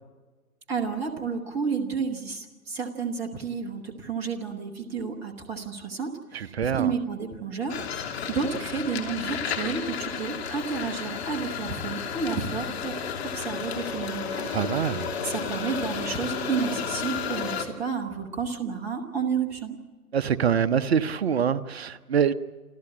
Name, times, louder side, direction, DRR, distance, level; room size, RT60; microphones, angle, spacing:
voice 1, 0.7-14.6 15.0-19.8, right 6 dB, 5° right, 0.8 m, -31 dB
voice 2, 6.3-6.9 14.5-15.1 20.1-22.3, right 7 dB, 45° right, 0.9 m, -25 dB
sound 1, 7.7-17.7, left 7 dB, 45° left, 2.9 m, -32 dB
28.5 x 13.5 x 8.5 m
hypercardioid pair, 145°, 46 cm